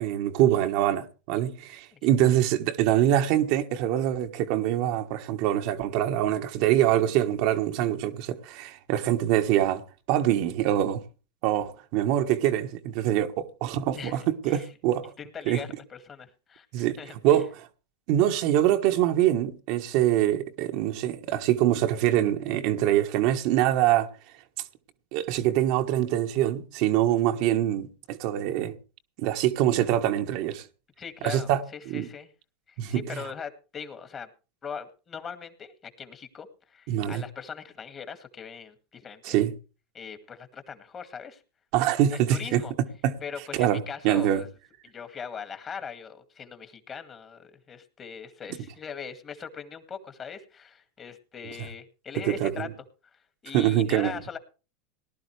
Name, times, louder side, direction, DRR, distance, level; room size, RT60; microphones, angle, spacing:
voice 1, 0.0-9.8 10.1-11.0 11.4-15.1 15.5-15.6 16.7-17.0 17.2-17.5 18.1-24.1 25.1-28.7 29.2-30.7 31.2-32.1 32.8-33.0 36.9-37.2 39.2-39.5 41.7-42.6 43.0-43.1 43.6-44.4 52.3-52.7 53.5-54.1, right 12 dB, 60° right, 1.4 m, -24 dB
voice 2, 15.2-17.4 31.0-32.3 32.7-34.3 34.6-39.4 39.9-41.4 42.1-42.7 43.2-44.5 44.8-52.7 53.1-54.4, left 6 dB, 30° left, 2.1 m, -40 dB
19.0 x 11.5 x 3.3 m
hypercardioid pair, 110°, 0 cm